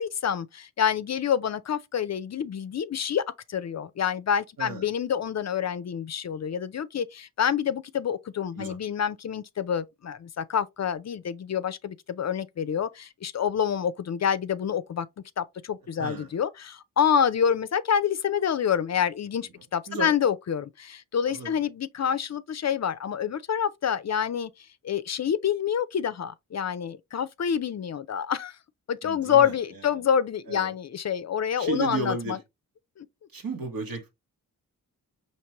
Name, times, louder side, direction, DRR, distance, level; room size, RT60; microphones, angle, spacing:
voice 1, 0.0-3.2 3.5-15.1 15.4-24.5 24.8-28.6 28.9-32.4 33.0-33.1, left 8 dB, 50° left, 0.4 m, -27 dB
voice 2, 4.6-4.9 8.5-8.8 16.0-16.3 19.9-20.1 21.3-21.6 29.0-30.0 30.5-30.7 31.6-32.4 33.3-34.1, right 3 dB, 75° right, 1.4 m, -34 dB
4.4 x 2.9 x 2.9 m
cardioid pair, 40°, 36 cm